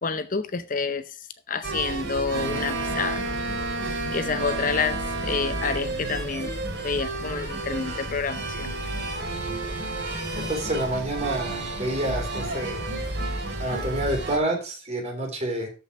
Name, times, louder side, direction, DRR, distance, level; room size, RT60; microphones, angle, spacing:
voice 1, 0.0-3.2 4.1-6.5 6.8-8.7, left 4 dB, 40° left, 0.7 m, -28 dB
sound 1, 1.6-14.4, right 2 dB, 55° right, 3.6 m, -31 dB
Wind instrument woodwind instrument, 2.3-5.9, right 2 dB, 75° right, 1.5 m, -33 dB
voice 2, 10.4-12.8 13.6-15.7, right 1 dB, 35° right, 3.6 m, -28 dB
13.0 x 5.7 x 4.8 m
head